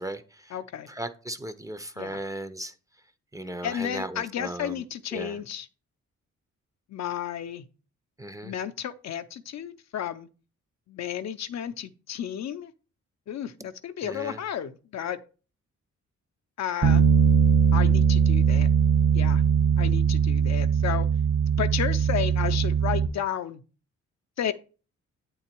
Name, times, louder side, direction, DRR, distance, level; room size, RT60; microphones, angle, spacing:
voice 1, 0.0-0.5 0.9-2.7 3.3-4.8 5.1-5.4 8.2-8.5 14.0-14.4, right 1 dB, 10° right, 0.5 m, -36 dB
voice 2, 0.5-0.9 2.0-2.2 3.6-5.7 6.9-7.7 8.4-10.3 10.9-12.7 13.3-15.2 16.6-17.0 17.7-18.7 19.1-19.4 19.8-21.1 21.5-23.6 24.4-24.5, left 9 dB, 60° left, 0.5 m, -32 dB
Bass guitar, 16.8-23.1, right 7 dB, 40° right, 0.8 m, -21 dB
8.2 x 3.9 x 4.4 m
cardioid pair, 85°, 30 cm